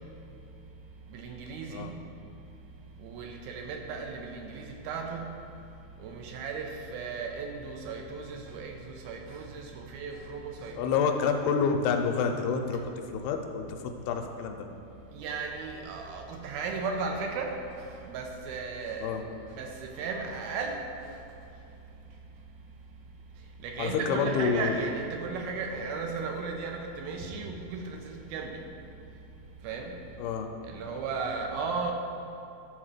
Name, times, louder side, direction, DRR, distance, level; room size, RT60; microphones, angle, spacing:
voice 1, 1.1-1.9 3.0-5.3 6.0-11.1 15.1-19.2 19.5-20.8 23.6-28.6 29.6-30.0 30.7-31.9, right 4 dB, 80° right, 2 dB, 2.7 m, -35 dB
voice 2, 10.8-12.8 13.1-13.6 14.1-14.7 19.0-19.2 23.8-24.8 30.2-30.5, left 6 dB, 85° left, 4 dB, 2.6 m, -28 dB
12.5 x 4.2 x 6.5 m, 2.9 s
omnidirectional pair, 4.5 m